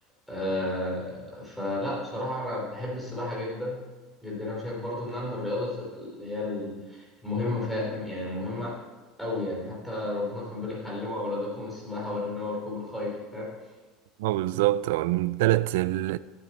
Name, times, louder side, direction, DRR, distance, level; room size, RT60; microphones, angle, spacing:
voice 1, 0.3-3.8 4.2-8.7 9.2-13.5, left 2 dB, ahead, 3.2 m, -32 dB
voice 2, 14.2-16.2, right 16 dB, 80° right, 0.3 m, -25 dB
11.5 x 9.1 x 4.1 m
cardioid pair, 160°, 0 cm